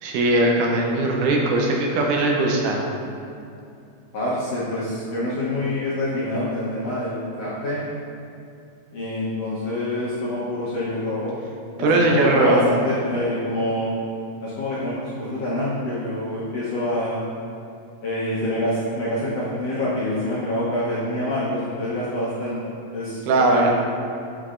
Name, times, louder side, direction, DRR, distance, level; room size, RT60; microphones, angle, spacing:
voice 1, 0.0-2.8 11.8-12.6 23.3-23.7, right 2 dB, 75° right, 0 dB, 2.0 m, -19 dB
voice 2, 4.1-7.8 8.9-11.3 11.8-13.9 14.4-17.2 18.0-22.6 22.9-23.7, left 1 dB, 70° left, -8 dB, 1.5 m, -26 dB
7.7 x 6.6 x 2.4 m, 2.6 s
omnidirectional pair, 4.0 m